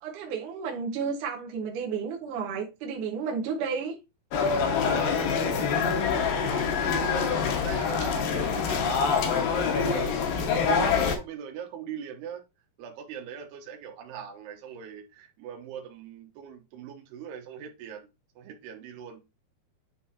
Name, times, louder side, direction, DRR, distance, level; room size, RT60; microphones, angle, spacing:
voice 1, 0.0-4.0, right 6 dB, 70° right, 2.1 m, -32 dB
sound 1, 4.3-11.2, left 6 dB, 75° left, 2.5 m, -25 dB
voice 2, 4.7-12.4 12.8-18.1 18.4-19.2, right 8 dB, 85° right, 3.0 m, -41 dB
9.5 x 3.7 x 2.8 m
omnidirectional pair, 4.7 m